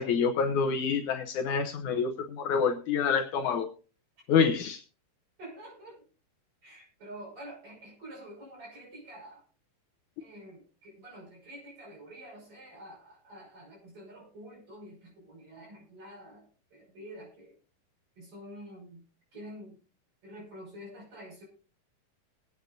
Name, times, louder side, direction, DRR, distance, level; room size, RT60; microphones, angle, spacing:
voice 1, 0.0-3.7 4.3-4.8, left 6 dB, 70° left, 5 dB, 2.2 m, -27 dB
voice 2, 5.4-6.1 6.6-9.4 10.2-17.6 18.2-19.0 19.3-19.8 20.2-21.4, right 1 dB, 40° right, -1 dB, 6.7 m, -48 dB
21.5 x 8.8 x 2.6 m, 0.36 s
omnidirectional pair, 3.8 m